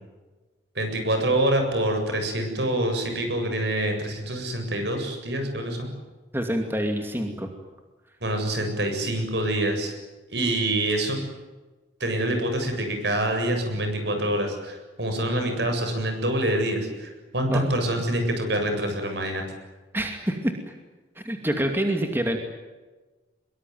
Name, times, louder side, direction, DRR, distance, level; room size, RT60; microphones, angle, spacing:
voice 1, 0.8-5.9 8.2-9.9 10.3-11.2 12.0-19.4, right 1 dB, 65° right, 5 dB, 7.7 m, -26 dB
voice 2, 6.3-7.5 17.5-18.0 19.9-20.5 21.2-22.4, right 1 dB, 10° right, 4 dB, 2.6 m, -27 dB
24.5 x 23.0 x 9.5 m, 1.2 s
head